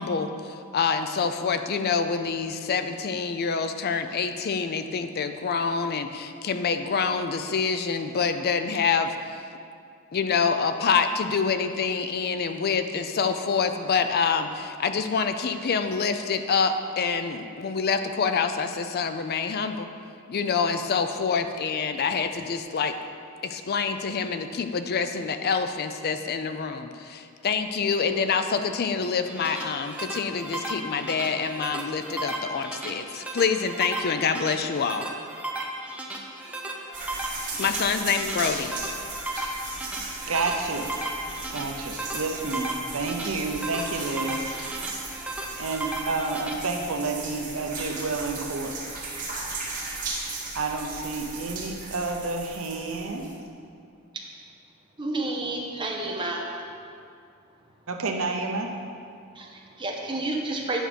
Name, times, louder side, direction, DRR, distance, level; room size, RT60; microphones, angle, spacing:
voice 1, 0.0-9.1 10.1-19.9 20.3-22.9 23.4-35.1 37.6-38.8, left 5 dB, 50° left, 9 dB, 0.4 m, -26 dB
sound 1, 29.1-46.5, right 1 dB, 5° right, 0.7 m, -35 dB
sound 2, 36.9-53.4, right 3 dB, 40° right, 2.0 m, -36 dB
voice 2, 40.3-40.9 41.5-44.4 45.6-48.7 50.5-53.3 57.9-58.7, right 3 dB, 75° right, 3 dB, 0.8 m, -30 dB
voice 3, 55.0-56.4 59.3-60.8, right 2 dB, 25° right, -1 dB, 1.1 m, -30 dB
8.9 x 6.1 x 5.1 m, 2.4 s
head